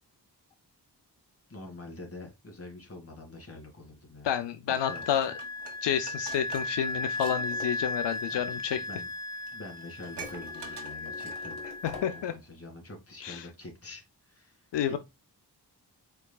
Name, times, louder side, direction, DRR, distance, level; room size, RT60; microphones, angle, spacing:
voice 1, 1.5-4.3 4.9-5.0 8.3-9.1 9.5-11.6 11.9-15.0, left 2 dB, 35° left, 2.3 m, -46 dB
voice 2, 4.2-5.3 5.8-8.8 11.8-12.3 13.2-13.5 14.7-15.0, left 9 dB, 90° left, 0.6 m, -30 dB
Wind instrument woodwind instrument, 4.8-12.2, left 2 dB, 10° left, 0.6 m, -36 dB
Dishes pots and pans, 4.9-7.4 7.7-7.9 8.7-8.8 9.2-9.3 9.5-11.7 12.1-12.2, right 6 dB, 75° right, 1.4 m, -47 dB
sound 1, 7.3-8.0 10.2-12.4, left 5 dB, 60° left, 1.8 m, -46 dB
4.8 x 4.7 x 2.3 m
wide cardioid pair, 85°, 41 cm